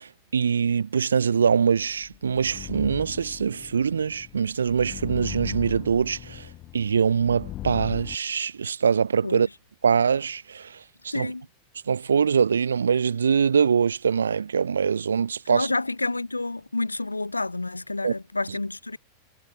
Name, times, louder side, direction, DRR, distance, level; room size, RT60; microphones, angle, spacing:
voice 1, 0.0-6.5 6.7-9.5 9.8-10.8 11.0-11.3 11.9-15.7 18.0-18.1, right 6 dB, 70° right, 0.4 m, -23 dB
sound 1, 1.8-8.1, left 13 dB, 35° left, 1.2 m, -39 dB
voice 2, 11.1-11.5 15.5-19.0, left 2 dB, 80° left, 0.4 m, -29 dB
figure-of-eight pair, 90°, 0 cm